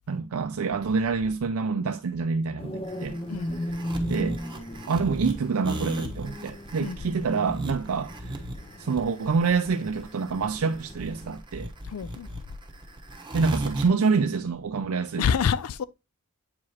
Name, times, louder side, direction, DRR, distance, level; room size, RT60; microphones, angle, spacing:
voice 1, 0.1-3.2 4.0-4.4 4.9-8.4 8.8-11.7 13.3-15.3, right 5 dB, 70° right, 0.5 m, -27 dB
sound 1, 2.6-11.3, equal, 25° left, 0.7 m, -37 dB
sound 2, 2.8-13.9, right 1 dB, 20° right, 1.0 m, -35 dB
voice 2, 3.3-3.7 6.8-7.0 11.9-12.3 15.2-15.8, left 7 dB, 85° left, 0.4 m, -27 dB
8.4 x 4.8 x 2.8 m
head